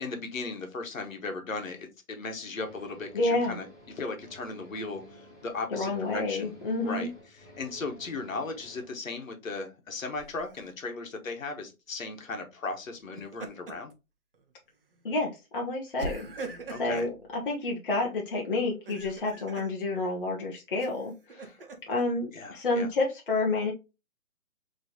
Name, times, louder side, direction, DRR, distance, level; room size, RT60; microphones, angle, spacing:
voice 1, 0.0-3.7 4.0-6.5 6.8-7.1 7.4-13.9 16.7-17.1 22.3-22.9, left 3 dB, 65° left, 5 dB, 1.2 m, -37 dB
sound 1, 2.5-8.9, equal, 10° left, 2.1 m, -52 dB
voice 2, 3.1-3.6 5.7-7.1 15.0-21.5 21.9-23.7, left 2 dB, 40° left, -1 dB, 0.7 m, -29 dB
Laughter, 10.1-10.7 13.0-13.9 14.3-14.5 16.0-17.1 18.7-19.7 20.8-22.0, right 3 dB, 40° right, 0.7 m, -41 dB
3.8 x 3.0 x 2.7 m, 0.26 s
hypercardioid pair, 160°, 43 cm